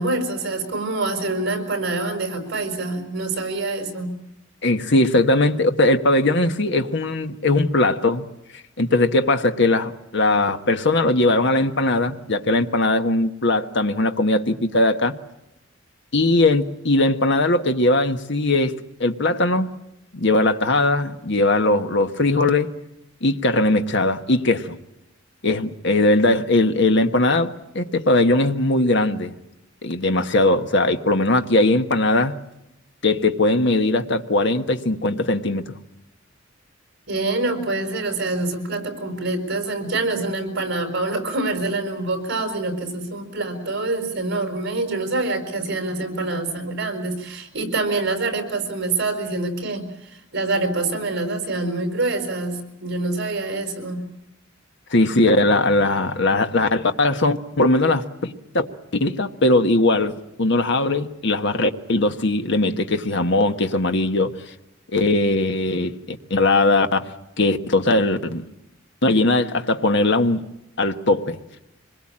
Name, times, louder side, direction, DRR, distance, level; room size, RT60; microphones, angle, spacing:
voice 1, 0.0-4.1 37.1-54.0, right 2 dB, 60° right, 5.4 m, -26 dB
voice 2, 4.6-8.3 8.8-15.1 16.1-19.7 20.1-22.7 23.2-24.8 25.4-29.3 29.8-32.4 33.0-35.7 54.9-58.7 59.0-64.3 64.9-67.1 67.4-68.4 69.0-70.4 70.8-71.4, left 2 dB, 60° left, 1.4 m, -20 dB
25.5 x 21.5 x 8.8 m
head